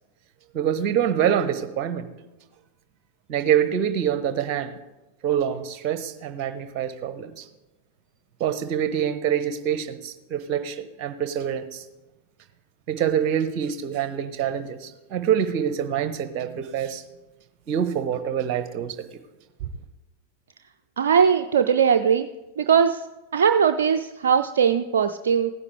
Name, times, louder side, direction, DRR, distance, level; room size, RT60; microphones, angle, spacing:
voice 1, 0.5-2.1 3.3-4.8 5.2-7.5 8.4-11.8 12.9-17.0 17.7-19.0 19.6-19.7, right 9 dB, 40° right, 12 dB, 1.0 m, -25 dB
voice 2, 21.0-22.3 22.6-23.0 23.3-25.5, right 7 dB, 65° right, 8 dB, 0.4 m, -20 dB
16.5 x 9.8 x 3.4 m, 1.0 s
figure-of-eight pair, 90°, 0 cm